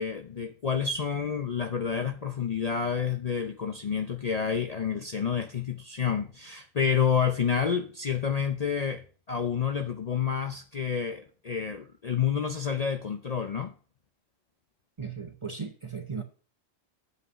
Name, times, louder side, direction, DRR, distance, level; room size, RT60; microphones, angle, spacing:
voice 1, 0.0-13.7, left 7 dB, 45° left, 0.6 m, -29 dB
voice 2, 15.0-16.2, right 5 dB, 30° right, 0.6 m, -36 dB
8.0 x 5.5 x 5.5 m
omnidirectional pair, 1.3 m